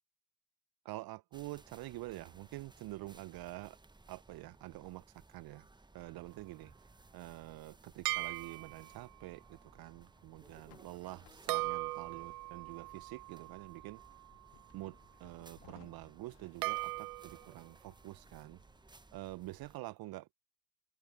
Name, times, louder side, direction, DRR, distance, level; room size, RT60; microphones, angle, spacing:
voice 1, 0.8-3.8 4.1-5.7 5.9-6.7 7.1-14.0 14.7-18.6 19.1-20.5, right 18 dB, 45° right, 1.1 m, -47 dB
sound 1, 1.3-19.8, right 2 dB, 10° right, 1.3 m, -61 dB
sound 2, 7.8-18.8, left 34 dB, 65° left, 2.1 m, -68 dB
sound 3, 8.1-9.1 11.5-14.6 16.6-17.5, right 21 dB, 70° right, 0.8 m, -39 dB
figure-of-eight pair, 60°, 49 cm